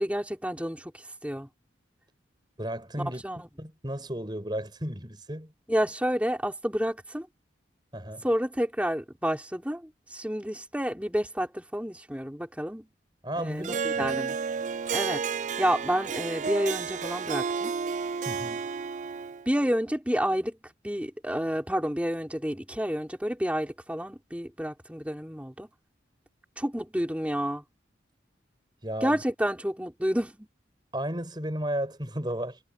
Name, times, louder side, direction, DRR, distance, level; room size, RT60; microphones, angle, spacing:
voice 1, 0.0-1.5 3.0-3.5 5.7-7.3 8.2-12.9 13.4-14.4 14.9-15.2 15.6-17.7 19.5-25.7 26.6-27.6 29.0-30.5, equal, 5° right, 3.9 m, -30 dB
voice 2, 2.6-3.2 3.6-5.5 7.9-8.3 13.2-14.2 18.3-18.7 28.8-29.2 30.9-32.6, right 1 dB, 25° right, 5.7 m, -34 dB
Harp, 13.6-19.5, right 6 dB, 40° right, 0.4 m, -31 dB
head